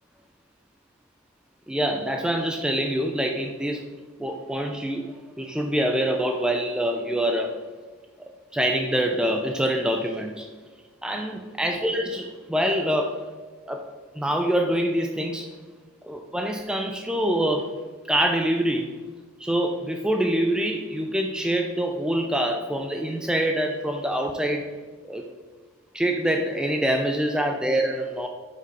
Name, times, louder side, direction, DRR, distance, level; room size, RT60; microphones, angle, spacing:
voice 1, 1.7-3.9 4.2-7.6 8.5-10.5 11.0-13.2 13.7-13.9 14.1-15.5 16.0-17.8 18.1-19.0 19.4-24.7 25.1-25.3 25.9-28.3, right 1 dB, 5° right, 3 dB, 0.3 m, -25 dB
5.2 x 5.0 x 4.1 m, 1.4 s
head